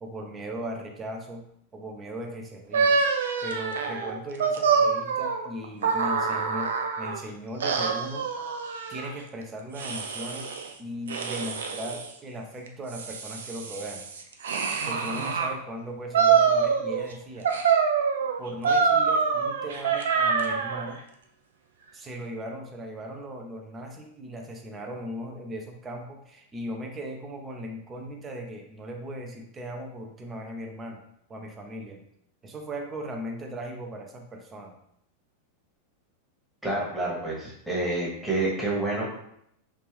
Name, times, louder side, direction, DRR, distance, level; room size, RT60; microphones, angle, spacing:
voice 1, 0.0-1.4 1.7-3.0 3.4-8.3 8.9-10.5 10.8-14.1 14.8-17.5 18.4-21.0 21.9-31.0 31.3-32.0 32.4-34.8, equal, 20° right, 2 dB, 0.6 m, -38 dB
sound 1, 2.7-7.2 7.6-9.1 9.8-10.7 11.1-12.1 12.7-15.5 16.1-17.1 17.4-20.9, right 6 dB, 60° right, 0.4 m, -25 dB
voice 2, 36.6-39.1, right 2 dB, 5° right, -6 dB, 1.2 m, -28 dB
3.3 x 2.5 x 3.2 m, 0.72 s
figure-of-eight pair, 90°, 0 cm